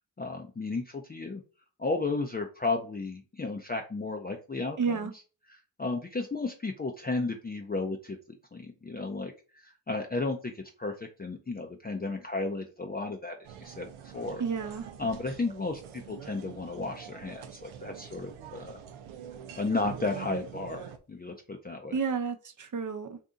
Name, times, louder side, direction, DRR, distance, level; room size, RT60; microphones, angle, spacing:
voice 1, 0.2-1.4 1.8-5.1 5.8-8.2 8.5-14.4 15.0-18.8 19.6-22.0, left 3 dB, 20° left, 2 dB, 0.5 m, -33 dB
voice 2, 4.8-5.1 14.4-14.8 21.9-23.2, right 5 dB, 40° right, 8 dB, 0.7 m, -31 dB
sound 1, 13.4-21.0, right 8 dB, 85° right, 0.6 m, -45 dB
2.7 x 2.6 x 3.6 m, 0.35 s
supercardioid pair, 45°, 47 cm